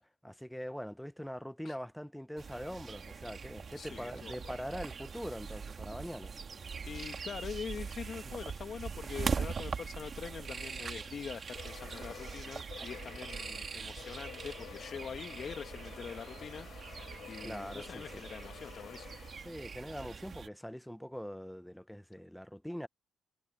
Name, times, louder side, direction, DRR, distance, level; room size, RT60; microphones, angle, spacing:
voice 1, 0.0-6.3 17.4-18.2 19.4-22.9, equal, ahead, 0.6 m, -43 dB
sound 1, 2.4-20.5, right 5 dB, 45° right, 1.8 m, -42 dB
voice 2, 3.8-4.5 6.1-6.2 6.8-19.1, left 6 dB, 50° left, 1.4 m, -44 dB
sound 2, 11.6-19.8, left 10 dB, 70° left, 4.1 m, -51 dB
cardioid pair, 90°, 0 cm